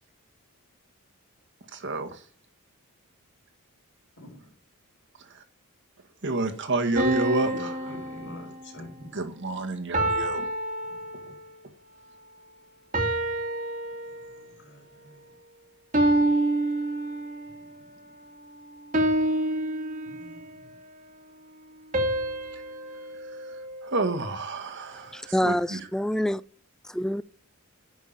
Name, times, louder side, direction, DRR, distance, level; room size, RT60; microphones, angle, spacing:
voice 1, 1.7-2.2 5.2-5.4 6.2-7.9 9.1-10.5 11.2-11.3 22.5-22.6 23.1-25.9, right 2 dB, 55° right, 1.9 m, -30 dB
voice 2, 4.2-4.6 7.4-9.2 10.9-11.4 14.0-15.4 17.5-18.0 20.0-20.8, left 1 dB, 55° left, 5.8 m, -46 dB
sound 1, 7.0-8.9 9.9-11.6 12.9-14.5 15.9-17.6 18.9-20.6 21.9-24.3, right 1 dB, 35° right, 2.4 m, -28 dB
voice 3, 25.1-26.4 26.9-27.2, equal, 5° left, 0.5 m, -26 dB
11.5 x 6.3 x 8.8 m
head